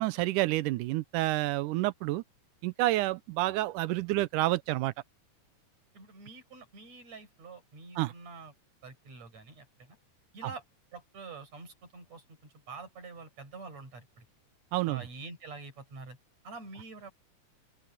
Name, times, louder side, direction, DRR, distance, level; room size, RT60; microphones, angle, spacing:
voice 1, 0.0-2.2 2.6-4.9 8.0-8.1 10.4-10.5 14.7-15.0, right 17 dB, 85° right, 2.3 m, -29 dB
voice 2, 5.9-8.5 8.8-10.0 10.3-10.6 10.9-14.3 14.9-16.2 16.4-17.1, right 4 dB, 60° right, 7.4 m, -46 dB
omnidirectional pair, 3.6 m